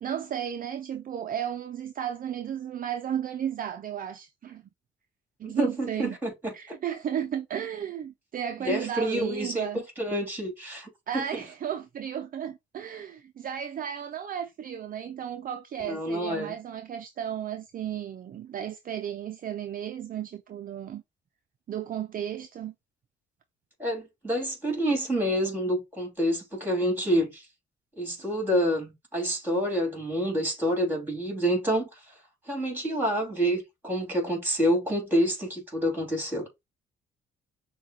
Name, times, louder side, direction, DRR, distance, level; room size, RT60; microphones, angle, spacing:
voice 1, 0.0-4.6 5.4-6.2 6.5-9.8 11.1-21.0 21.7-22.7, right 9 dB, 45° right, 0.4 m, -34 dB
voice 2, 5.4-6.8 8.6-11.4 15.8-16.5 23.8-27.5 28.0-32.0 32.5-36.6, equal, 10° right, 2.7 m, -28 dB
6.3 x 2.3 x 2.8 m
cardioid pair, 90°, 20 cm